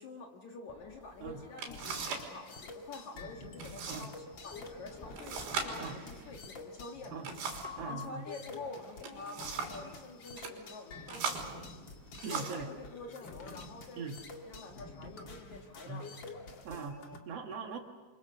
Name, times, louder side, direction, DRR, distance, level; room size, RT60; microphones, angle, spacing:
voice 1, 0.0-7.2 7.8-11.7 12.0-14.1 14.5-16.2, left 3 dB, 60° left, 2 dB, 2.0 m, -47 dB
sound 1, 0.7-1.8 4.3-6.1, equal, 5° left, 3.2 m, -53 dB
sound 2, 1.1-1.2 1.6-2.3 2.6-3.1 3.6-4.1 4.4-4.5 5.2-7.8 8.8-9.9 10.3-10.6 11.1-12.7 13.5-13.7 14.2-14.7, right 5 dB, 65° right, 5.7 m, -40 dB
sound 3, 1.7-17.2, left 3 dB, 90° left, 1.0 m, -48 dB
voice 2, 7.8-8.3 12.2-12.7 14.0-14.2 15.9-16.1 16.6-17.8, right 5 dB, 90° right, 3 dB, 1.3 m, -41 dB
28.0 x 25.5 x 7.0 m, 1.3 s
omnidirectional pair, 5.7 m